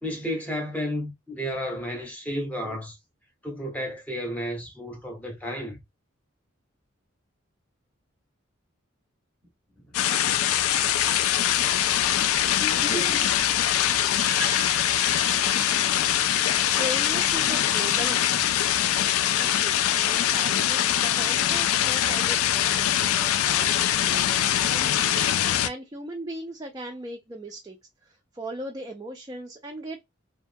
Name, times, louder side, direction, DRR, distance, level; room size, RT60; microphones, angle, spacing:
voice 1, 0.0-3.0 3.4-5.8 12.6-13.4, equal, 5° left, 0.7 m, -32 dB
sound 1, 9.9-25.7, left 11 dB, 90° left, 0.3 m, -23 dB
voice 2, 12.7-13.1 13.8-15.6 16.7-18.6 19.4-27.8 28.0-30.0, right 1 dB, 20° right, 0.3 m, -38 dB
2.8 x 2.3 x 2.5 m
head